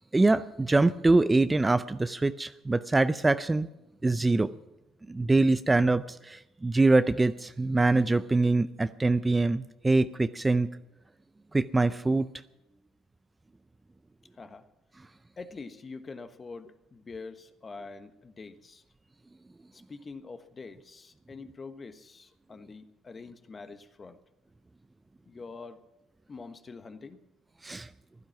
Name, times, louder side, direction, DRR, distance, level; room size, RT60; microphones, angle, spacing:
voice 1, 0.1-3.7 4.0-4.5 5.1-10.7 11.5-12.3 27.6-27.9, right 2 dB, 15° right, 13 dB, 0.5 m, -24 dB
voice 2, 14.3-14.6 15.4-18.8 19.7-24.2 25.2-25.8 26.3-27.2, left 4 dB, 30° left, 10 dB, 1.3 m, -45 dB
16.0 x 12.0 x 5.9 m, 0.94 s
supercardioid pair, 85°, 0 cm